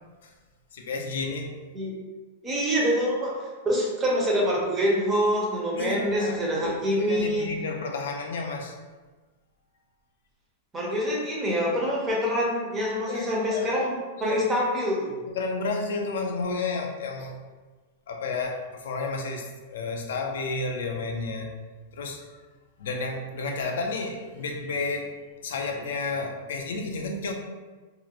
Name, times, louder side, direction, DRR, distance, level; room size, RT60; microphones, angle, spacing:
voice 1, 0.7-1.5 5.8-8.7 13.1-13.9 14.2-14.4 15.3-17.4 18.1-21.5 21.9-22.4 22.8-27.3, left 3 dB, 75° left, 2 dB, 0.4 m, -31 dB
voice 2, 2.4-3.4 3.6-7.5 10.7-15.2, equal, 10° right, -4 dB, 0.5 m, -25 dB
2.4 x 2.0 x 2.8 m, 1.3 s
supercardioid pair, 175°, 0 cm